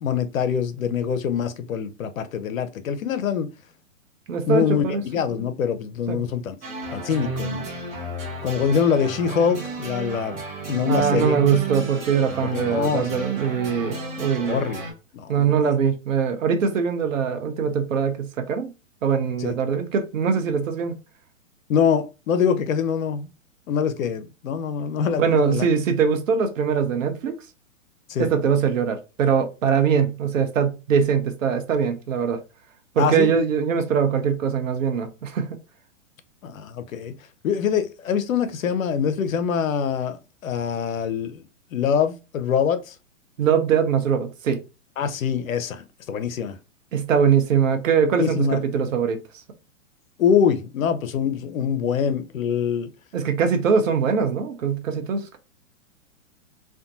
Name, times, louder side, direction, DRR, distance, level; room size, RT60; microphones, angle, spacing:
voice 1, 0.0-3.5 4.5-4.8 5.1-6.6 6.9-7.7 8.4-10.4 10.7-11.4 12.4-13.2 14.4-14.8 15.1-15.6 19.4-19.6 21.7-23.3 23.7-25.7 28.1-28.3 33.0-33.3 36.4-37.1 37.4-41.4 41.7-42.9 45.0-46.6 48.2-48.6 50.2-52.9, left 7 dB, 80° left, 0.5 m, -24 dB
voice 2, 4.3-5.0 6.1-6.2 10.8-14.7 15.3-18.7 19.0-21.0 25.2-27.3 28.2-32.4 33.0-35.5 43.4-44.6 46.9-49.2 53.1-55.4, right 6 dB, 70° right, 0.7 m, -22 dB
sound 1, 6.6-14.9, right 3 dB, 20° right, 0.7 m, -32 dB
2.6 x 2.1 x 2.6 m
hypercardioid pair, 120°, 40 cm